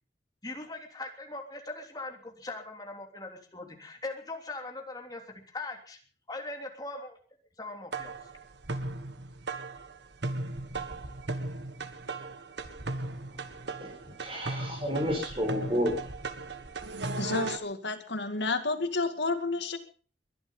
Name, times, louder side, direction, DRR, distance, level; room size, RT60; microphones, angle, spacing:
voice 1, 0.4-6.0 6.3-7.2 7.6-8.1, left 2 dB, 20° left, 3 dB, 3.3 m, -40 dB
sound 1, 7.9-17.6, right 2 dB, 80° right, 1.6 m, -37 dB
voice 2, 13.8-16.1, equal, 30° right, -1 dB, 4.9 m, -31 dB
voice 3, 17.2-19.8, left 3 dB, 80° left, 8 dB, 2.3 m, -30 dB
22.0 x 11.5 x 5.6 m, 0.41 s
head